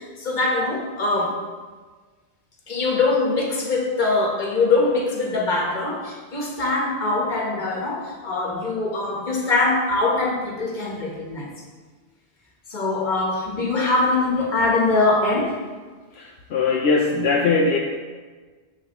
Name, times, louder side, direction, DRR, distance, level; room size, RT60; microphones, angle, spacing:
voice 1, 0.0-1.4 2.7-11.5 12.7-15.6, left 3 dB, 50° left, -1 dB, 1.2 m, -22 dB
voice 2, 16.1-17.8, left 4 dB, 75° left, 1 dB, 0.8 m, -20 dB
6.8 x 6.5 x 2.9 m, 1.4 s
omnidirectional pair, 1.1 m